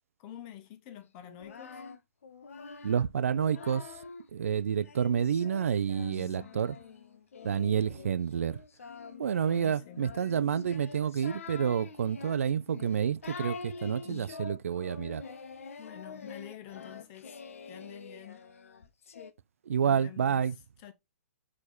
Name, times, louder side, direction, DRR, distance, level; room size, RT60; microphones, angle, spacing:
voice 1, 0.2-1.8 6.0-6.6 9.4-10.1 14.0-14.3 15.8-17.3 17.6-18.4 19.8-20.5 20.8-20.9, left 11 dB, 40° left, 1.3 m, -47 dB
Singing, 1.2-4.3 4.8-19.3, left 5 dB, 75° left, 0.9 m, -46 dB
voice 2, 2.8-3.9 4.3-6.8 7.4-8.6 9.2-15.2 19.7-20.6, right 8 dB, 75° right, 0.5 m, -29 dB
5.0 x 4.8 x 4.1 m
hypercardioid pair, 125°, 8 cm